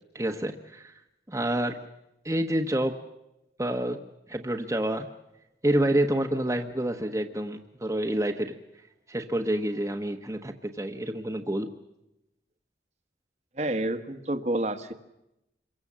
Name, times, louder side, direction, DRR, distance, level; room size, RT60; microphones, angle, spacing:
voice 1, 0.1-1.0 1.3-1.8 2.2-3.0 3.6-4.0 4.3-5.1 5.6-8.6 9.1-11.7, right 1 dB, 15° right, 3 dB, 1.1 m, -28 dB
voice 2, 13.5-14.9, right 1 dB, 40° right, 8 dB, 1.3 m, -29 dB
27.0 x 23.0 x 7.4 m, 0.90 s
head